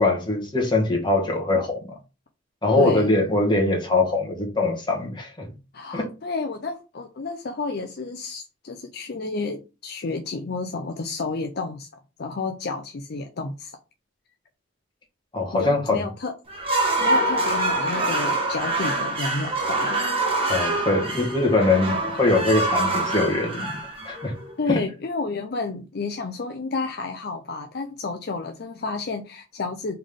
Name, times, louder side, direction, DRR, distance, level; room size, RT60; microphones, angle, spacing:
voice 1, 0.0-1.9 2.6-5.5 5.9-6.1 15.3-16.1 20.5-23.7 24.0-24.3 24.7-24.8, left 2 dB, 25° left, 1.3 m, -22 dB
voice 2, 2.8-3.1 5.7-11.9 12.2-13.7 15.5-16.3 17.0-20.0 20.3-20.6 24.6-30.0, left 3 dB, 55° left, 0.5 m, -31 dB
sound 1, 16.5-24.6, right 2 dB, 30° right, 1.0 m, -25 dB
3.7 x 3.4 x 3.6 m
head